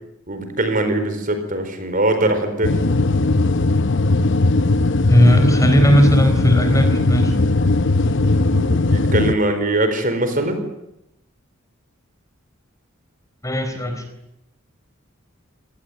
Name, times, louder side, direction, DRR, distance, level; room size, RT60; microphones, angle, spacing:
voice 1, 0.3-2.9 8.5-10.6, right 1 dB, 40° right, 8 dB, 4.6 m, -21 dB
sound 1, 2.6-9.3, left 2 dB, 60° left, 0.8 m, -18 dB
voice 2, 5.1-7.3 13.4-14.0, equal, 15° left, 6 dB, 4.2 m, -16 dB
27.0 x 19.0 x 9.4 m, 0.87 s
head